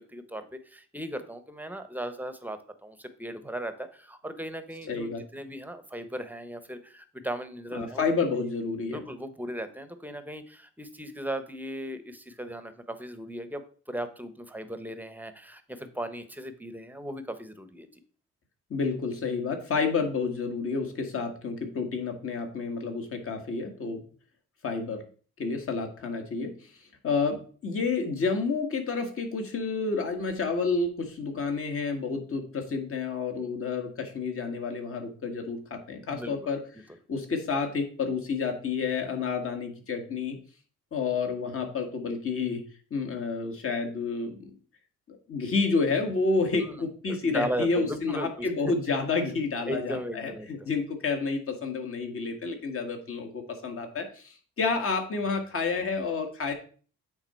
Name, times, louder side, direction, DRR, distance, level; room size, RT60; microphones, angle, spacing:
voice 1, 0.0-8.0 8.9-18.0 36.0-36.3 46.6-48.5 49.7-50.7, right 1 dB, 5° right, 9 dB, 0.9 m, -37 dB
voice 2, 4.9-5.2 7.7-9.0 18.7-24.0 24.6-25.0 25.4-26.6 27.0-36.6 37.1-40.4 40.9-42.6 42.9-44.5 45.1-56.5, left 4 dB, 45° left, 4 dB, 1.8 m, -30 dB
8.7 x 3.9 x 4.4 m, 0.42 s
cardioid pair, 90°, 30 cm